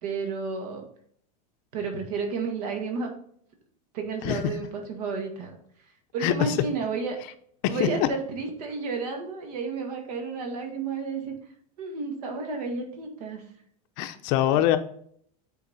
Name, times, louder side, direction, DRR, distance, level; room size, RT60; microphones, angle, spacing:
voice 1, 0.0-0.9 1.7-3.1 3.9-5.6 6.1-7.2 7.7-11.3 11.8-13.4 14.4-14.7, right 4 dB, 75° right, 3 dB, 2.0 m, -32 dB
voice 2, 6.2-6.6 7.6-8.1 14.0-14.8, left 12 dB, 50° left, 10 dB, 0.7 m, -24 dB
8.4 x 4.3 x 4.2 m, 0.64 s
supercardioid pair, 160°, 20 cm